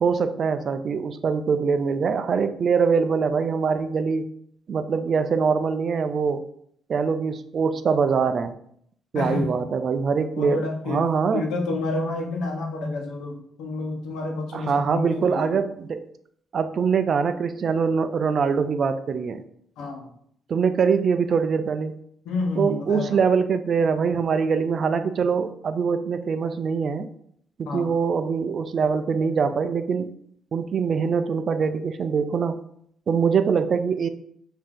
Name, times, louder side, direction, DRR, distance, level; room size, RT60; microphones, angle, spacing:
voice 1, 0.0-4.3 4.7-6.4 6.9-8.5 9.1-11.5 14.5-16.0 16.5-19.4 20.5-21.9 22.6-27.1 27.6-30.1 30.5-32.6 33.1-34.1, right 5 dB, 50° right, 10 dB, 0.4 m, -23 dB
voice 2, 9.1-9.5 10.3-11.0 11.3-15.5 19.8-20.1 22.2-23.2 27.7-27.9, left 3 dB, 90° left, 2 dB, 0.9 m, -29 dB
4.8 x 2.7 x 3.7 m, 0.68 s
cardioid pair, 90°, 0 cm